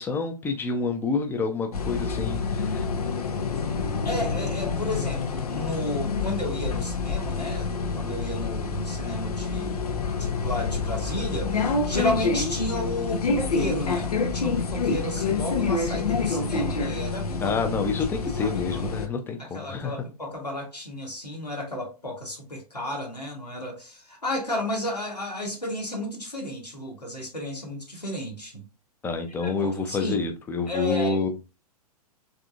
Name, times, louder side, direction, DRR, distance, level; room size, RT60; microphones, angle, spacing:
voice 1, 0.0-2.8 17.4-19.9 29.0-31.3, left 4 dB, 10° left, 0.5 m, -28 dB
sound 1, 1.7-19.1, left 4 dB, 70° left, 0.7 m, -27 dB
voice 2, 4.0-17.6 18.2-18.9 19.4-28.6 29.4-30.2 30.7-31.2, left 1 dB, 90° left, 1.3 m, -33 dB
3.7 x 3.3 x 2.4 m
figure-of-eight pair, 110°, 20 cm